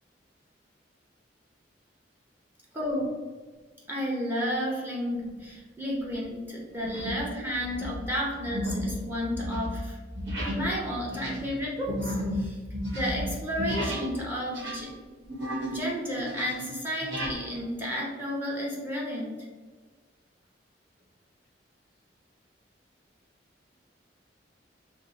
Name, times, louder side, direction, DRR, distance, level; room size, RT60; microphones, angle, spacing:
voice 1, 2.7-3.1 3.9-10.0 10.5-12.6 12.9-14.9 15.7-19.5, equal, 10° right, -4 dB, 0.8 m, -32 dB
sound 1, 5.1-5.5 6.0-6.2 6.8-7.3 7.6-14.2 14.4-15.9 16.2-17.4, equal, 75° right, 1.3 m, -33 dB
5.8 x 2.1 x 4.0 m, 1.4 s
head